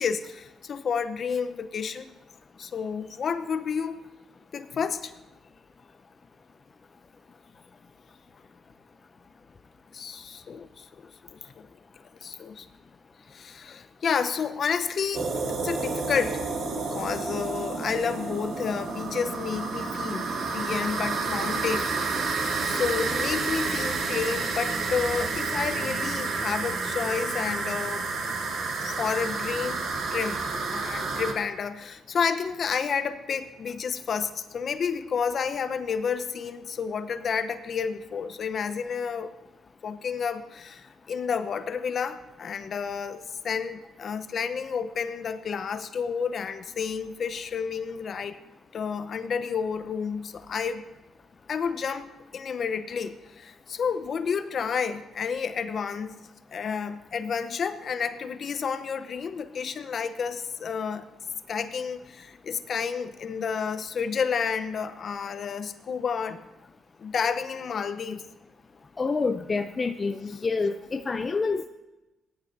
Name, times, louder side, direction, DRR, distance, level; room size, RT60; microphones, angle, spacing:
voice 1, 0.0-2.1 2.6-4.0 4.5-5.1 9.9-10.9 11.6-11.7 12.2-12.7 13.3-16.4 16.7-20.2 20.5-22.2 22.6-28.1 28.8-29.8 30.1-39.3 39.8-48.4 48.7-50.8 51.5-56.1 56.5-61.1 61.5-66.4 67.0-68.2, left 6 dB, 55° left, 10 dB, 0.9 m, -30 dB
sound 1, 15.1-31.3, right 4 dB, 65° right, 1.6 m, -30 dB
voice 2, 69.0-71.7, left 4 dB, 30° left, 7 dB, 0.5 m, -27 dB
18.5 x 11.0 x 2.7 m, 1.0 s
cardioid pair, 90°, 0 cm